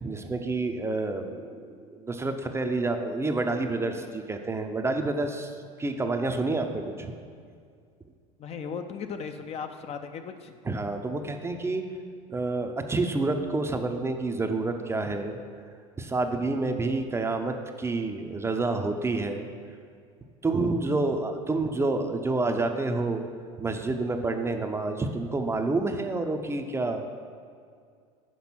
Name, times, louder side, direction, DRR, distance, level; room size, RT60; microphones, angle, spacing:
voice 1, 0.0-5.5 5.8-7.1 10.6-11.8 12.3-15.4 16.0-19.5 20.4-23.3 23.6-27.0, right 3 dB, 15° right, 6 dB, 0.5 m, -28 dB
voice 2, 8.4-10.5, left 6 dB, 35° left, 7 dB, 0.5 m, -36 dB
6.1 x 5.0 x 5.9 m, 2.2 s
hypercardioid pair, 85°, 18 cm